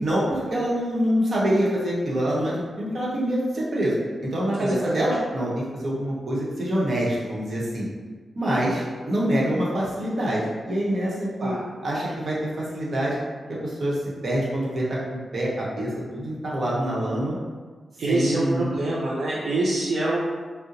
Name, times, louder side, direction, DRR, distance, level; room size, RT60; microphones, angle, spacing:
voice 1, 0.0-3.9 4.2-7.9 8.4-11.6 11.8-12.4 12.7-13.2 13.6-17.4 18.1-18.7, equal, 55° right, -6 dB, 0.9 m, -25 dB
voice 2, 4.6-5.1 11.4-11.6 18.0-20.2, right 2 dB, 75° right, -6 dB, 0.4 m, -25 dB
2.7 x 2.1 x 3.8 m, 1.5 s
wide cardioid pair, 90°, 0 cm